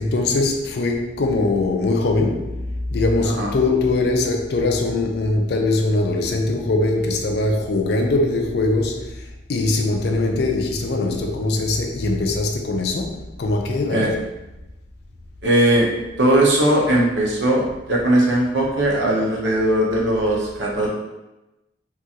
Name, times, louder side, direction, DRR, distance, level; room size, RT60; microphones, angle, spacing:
voice 1, 0.0-14.5, left 2 dB, 60° left, 0.4 m, -22 dB
voice 2, 15.4-15.9 16.2-20.9, right 1 dB, 75° right, 0.7 m, -19 dB
3.0 x 2.4 x 2.7 m
head